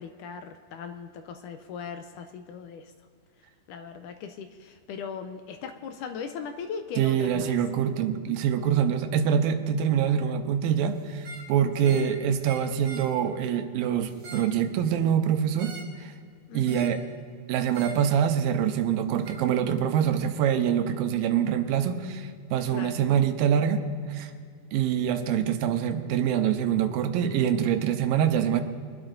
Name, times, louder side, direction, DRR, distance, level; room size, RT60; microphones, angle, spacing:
voice 1, 0.0-2.9 3.7-7.5 11.8-12.1 16.5-16.9 22.7-23.0, left 6 dB, 80° left, 7 dB, 1.9 m, -39 dB
voice 2, 7.0-15.7 16.0-16.1 16.5-17.0 17.5-23.8 24.1-24.3 24.7-28.6, right 9 dB, 90° right, 7 dB, 2.6 m, -25 dB
sound 1, 11.1-11.5 11.8-12.1 12.4-13.1 14.0-14.5 15.6-16.0 16.6-17.0 17.7-18.0 19.2-19.4, right 3 dB, 45° right, 2.5 m, -43 dB
23.5 x 12.0 x 2.6 m, 2.1 s
omnidirectional pair, 4.0 m